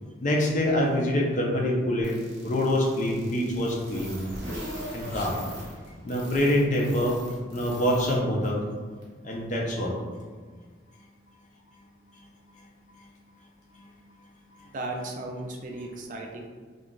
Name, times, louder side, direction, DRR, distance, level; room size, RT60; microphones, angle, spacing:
voice 1, 0.2-2.2 2.4-4.2 4.9-5.4 6.0-7.2 7.5-8.6 9.2-9.9, left 1 dB, 40° left, -2 dB, 0.5 m, -25 dB
sound 1, 2.0-8.2 8.4-8.5 9.0-9.1, right 1 dB, 65° right, 1.0 m, -44 dB
Race car auto racing / Accelerating revving vroom, 3.4-7.4, equal, 15° right, 0.9 m, -41 dB
voice 2, 14.6-16.5, right 2 dB, 40° right, 1 dB, 0.3 m, -36 dB
2.4 x 2.2 x 3.7 m, 1.6 s
head